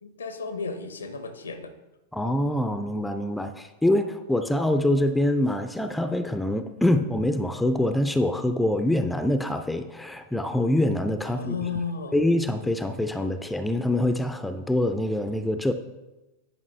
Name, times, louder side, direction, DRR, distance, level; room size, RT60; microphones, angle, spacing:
voice 1, 0.0-1.7 11.3-12.2, left 4 dB, 70° left, 9 dB, 0.7 m, -33 dB
voice 2, 2.1-11.5 12.1-15.7, left 1 dB, 5° left, 9 dB, 0.4 m, -25 dB
9.2 x 5.2 x 3.1 m, 1.1 s
figure-of-eight pair, 90°, 0 cm